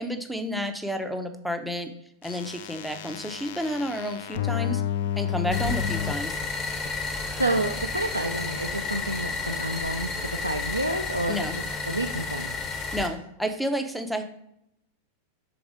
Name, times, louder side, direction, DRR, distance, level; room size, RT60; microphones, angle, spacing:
voice 1, 0.0-1.9 2.2-4.8 5.2-6.4 11.3-11.6 12.9-14.2, equal, ahead, 5 dB, 0.6 m, -30 dB
sound 1, 2.2-6.1 6.9-7.0, left 10 dB, 55° left, 0.3 m, -30 dB
sound 2, 5.5-13.1, left 4 dB, 30° left, 1.2 m, -31 dB
voice 2, 7.4-12.5, right 1 dB, 85° right, 3 dB, 0.4 m, -29 dB
6.0 x 3.9 x 4.9 m, 0.78 s
figure-of-eight pair, 90°, 0 cm